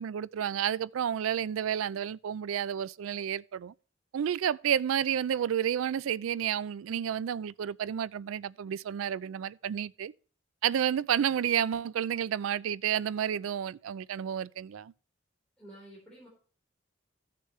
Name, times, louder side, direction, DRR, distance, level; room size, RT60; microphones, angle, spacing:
voice 1, 0.0-3.7 4.1-10.1 10.6-14.9, right 9 dB, 85° right, 0.3 m, -30 dB
voice 2, 15.6-16.3, right 1 dB, 5° left, 4.1 m, -50 dB
15.0 x 6.8 x 3.2 m
head